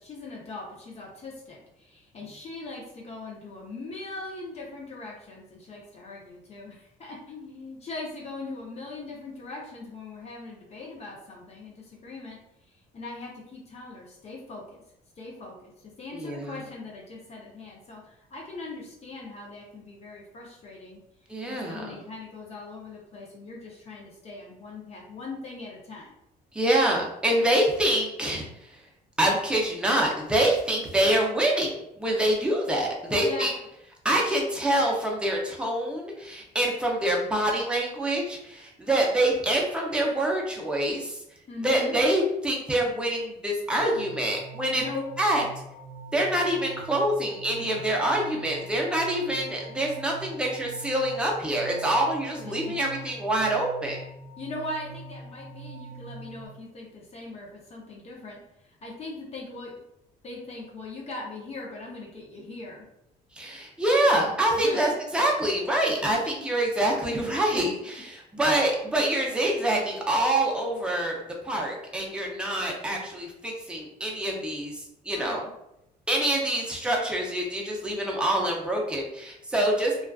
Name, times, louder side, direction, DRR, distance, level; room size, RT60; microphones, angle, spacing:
voice 1, 0.0-12.4 12.7-14.8 15.2-21.0 21.5-26.1 33.2-33.4 41.5-42.0 44.7-45.0 47.6-47.8 52.4-52.8 54.4-59.8 60.2-62.9 64.5-64.8 66.0-66.1 75.1-75.5, left 3 dB, 40° left, -3 dB, 0.6 m, -40 dB
voice 2, 16.1-16.5 21.3-21.9 26.5-28.5 29.2-33.5 34.0-41.2 41.6-44.8 45.2-45.4 46.1-54.0 63.4-71.2 71.4-74.8 75.1-75.4 76.1-80.1, right 1 dB, 5° right, -1 dB, 0.6 m, -26 dB
sound 1, 43.8-56.5, right 2 dB, 70° right, 0.5 m, -43 dB
2.3 x 2.3 x 2.3 m, 0.82 s
cardioid pair, 110°, 17 cm